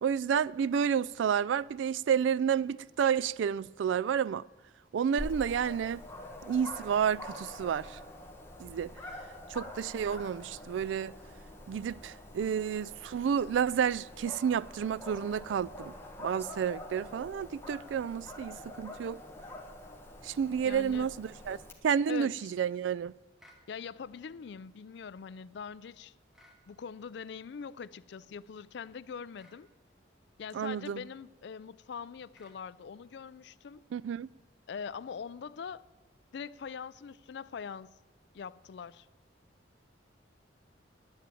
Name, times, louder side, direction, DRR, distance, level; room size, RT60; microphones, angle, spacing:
voice 1, 0.0-4.4 4.9-6.0 6.4-8.0 8.6-8.9 9.5-11.1 11.7-19.2 20.2-21.6 21.8-23.2 30.5-31.0 33.9-34.3, right 7 dB, 75° right, 0.3 m, -30 dB
Dog, 5.2-21.7, left 1 dB, 15° left, 1.4 m, -46 dB
voice 2, 20.6-21.1 22.1-22.5 23.7-26.1 26.7-29.7 30.4-33.8 34.7-35.9 36.3-38.0 38.3-39.1, left 6 dB, 60° left, 0.4 m, -43 dB
sound 1, 23.4-23.7 26.3-26.6 29.3-29.6 32.3-32.6, left 1 dB, ahead, 1.5 m, -59 dB
10.5 x 10.0 x 8.4 m
head